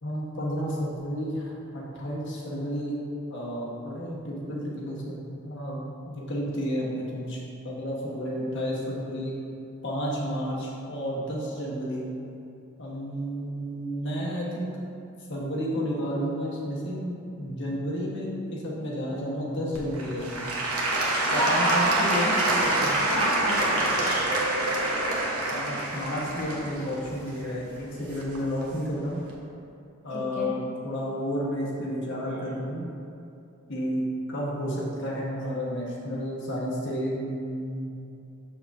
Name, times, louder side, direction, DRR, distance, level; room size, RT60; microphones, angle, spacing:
voice 1, 0.0-3.0 3.3-5.8 6.0-7.4 7.6-9.3 9.8-12.1 12.8-14.7 15.3-20.4 21.3-23.0 25.5-29.2 30.0-30.6 30.8-32.9 33.7-37.9, equal, 55° left, -5 dB, 1.2 m, -31 dB
Applause / Crowd, 19.7-28.6 29.2-29.3, right 2 dB, 80° right, 0.9 m, -26 dB
voice 2, 21.3-21.8 23.1-24.3 30.1-30.6 32.3-32.4, equal, 35° left, -9 dB, 0.8 m, -30 dB
6.6 x 5.9 x 2.5 m, 2.6 s
head